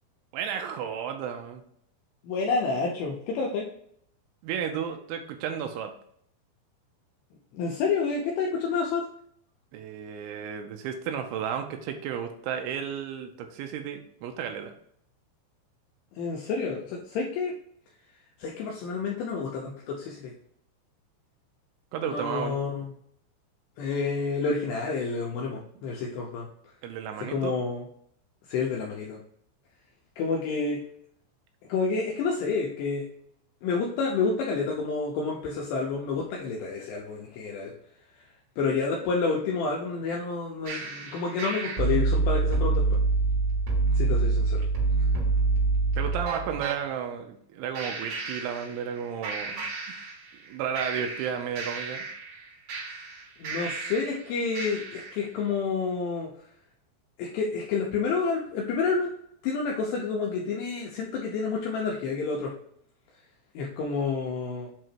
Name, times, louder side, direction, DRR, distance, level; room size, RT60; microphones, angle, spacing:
voice 1, 0.3-1.6 4.4-5.9 9.7-14.7 21.9-22.6 26.8-27.6 46.0-49.7 50.5-52.1, right 8 dB, 85° right, 5 dB, 2.8 m, -33 dB
voice 2, 2.2-3.6 7.5-9.0 16.2-17.5 18.4-20.3 22.0-22.9 23.8-26.5 27.3-27.8 28.5-29.2 30.2-30.8 31.7-33.1 33.6-37.7 38.6-42.8 43.9-44.7 53.4-56.3 57.2-59.1 59.4-62.5 63.6-64.7, left 4 dB, 85° left, -2 dB, 2.4 m, -29 dB
sound 1, 40.7-46.8 47.8-49.0 49.2-50.5 50.8-54.2 54.6-55.2, right 3 dB, 65° right, 3.6 m, -27 dB
7.6 x 2.8 x 4.4 m, 0.68 s
omnidirectional pair, 5.8 m